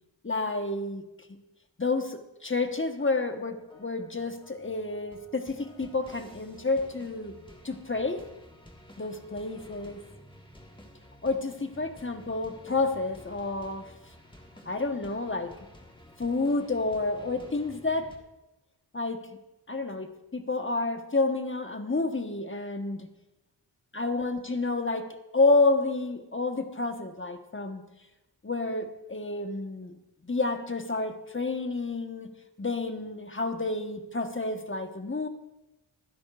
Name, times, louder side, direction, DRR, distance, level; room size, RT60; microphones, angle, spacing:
voice 1, 0.2-1.1 1.8-7.3 7.6-8.2 9.0-10.0 11.2-13.9 14.6-15.6 16.2-18.1 18.9-19.3 19.7-23.1 23.9-27.8 28.4-29.9 30.2-32.3 32.6-35.3, left 3 dB, 30° left, 6 dB, 1.3 m, -29 dB
sound 1, 2.6-18.2, left 1 dB, 10° left, 1.7 m, -52 dB
24.5 x 10.5 x 2.5 m, 0.96 s
cardioid pair, 50°, 43 cm